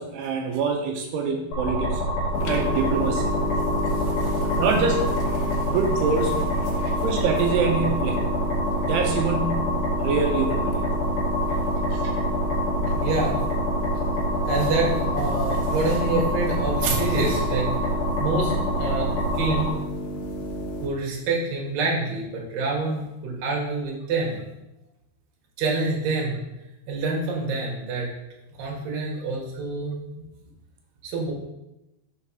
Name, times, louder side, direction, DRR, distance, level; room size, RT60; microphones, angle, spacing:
voice 1, 0.0-2.0 2.5-3.3 4.6-5.0 5.6-6.5 7.0-8.3 8.8-10.8 11.9-12.1, right 5 dB, 80° right, 3 dB, 2.6 m, -25 dB
sound 1, 1.5-19.7, equal, 65° left, 3.8 m, -26 dB
sound 2, 2.3-20.9, left 1 dB, 85° left, 3.2 m, -31 dB
voice 2, 3.9-4.4 12.7-13.4 14.4-17.7 18.2-19.7 20.8-24.4 25.6-26.4 26.9-28.1 28.6-30.0 31.0-31.3, right 3 dB, 60° right, -2 dB, 2.9 m, -27 dB
7.1 x 3.4 x 5.7 m, 0.94 s
omnidirectional pair, 4.9 m